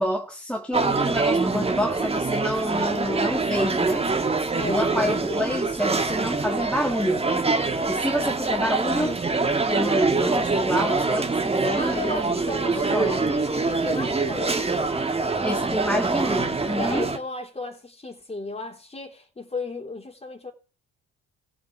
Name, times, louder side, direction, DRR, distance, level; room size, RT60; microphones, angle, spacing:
voice 1, 0.0-4.1 4.7-7.3 7.8-9.2 9.7-12.4 12.7-13.2 15.4-17.1, equal, 5° left, 1.4 m, -28 dB
sound 1, 0.7-17.2, right 3 dB, 20° right, 1.5 m, -25 dB
voice 2, 4.6-5.5 11.8-14.8 16.8-20.5, left 2 dB, 20° left, 3.3 m, -34 dB
15.5 x 5.3 x 8.5 m
cardioid pair, 90°, 30 cm